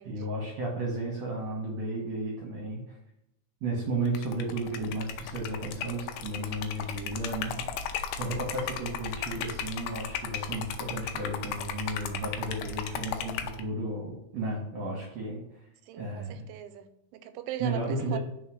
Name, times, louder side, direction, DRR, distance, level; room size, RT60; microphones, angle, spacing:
voice 1, 0.0-3.0 3.6-7.7 8.2-15.4 16.0-16.4 17.6-18.2, right 2 dB, 65° right, 1.7 m, -33 dB
Liquid, 4.1-13.6, left 8 dB, 85° left, 2.5 m, -36 dB
voice 2, 15.9-18.2, right 11 dB, 90° right, 2.6 m, -40 dB
5.5 x 3.9 x 4.7 m
omnidirectional pair, 4.4 m